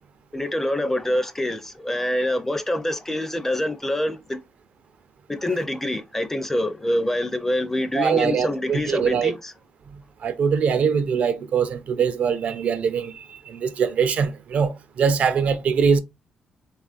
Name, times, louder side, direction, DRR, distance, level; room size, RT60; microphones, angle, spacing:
voice 1, 0.3-4.4 5.3-9.3, left 1 dB, 15° left, 0.5 m, -25 dB
voice 2, 7.9-9.4 10.2-16.0, right 6 dB, 60° right, 0.4 m, -22 dB
3.1 x 2.4 x 2.4 m
cardioid pair, 85°, 3 cm